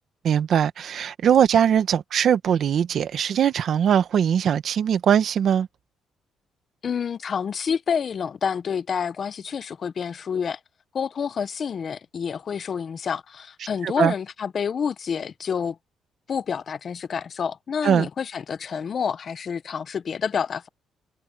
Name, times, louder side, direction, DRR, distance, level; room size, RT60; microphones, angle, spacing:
voice 1, 0.2-5.7 13.8-14.1 17.8-18.1, right 8 dB, 65° right, 1.5 m, -21 dB
voice 2, 6.8-10.6 10.9-15.8 16.3-20.7, left 7 dB, 50° left, 1.0 m, -28 dB
cardioid pair, 90°, 0 cm